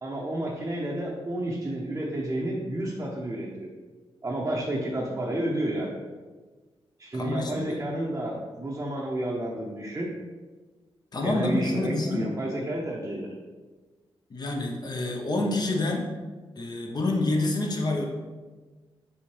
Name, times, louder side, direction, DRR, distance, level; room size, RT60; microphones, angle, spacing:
voice 1, 0.0-3.7 4.2-5.9 7.0-10.1 11.2-13.3, right 1 dB, 25° right, -3 dB, 0.6 m, -30 dB
voice 2, 7.1-7.8 11.1-12.3 14.3-16.1 16.6-18.1, left 2 dB, 45° left, 1 dB, 0.6 m, -28 dB
4.3 x 3.5 x 3.2 m, 1.3 s
cardioid pair, 90°, 10 cm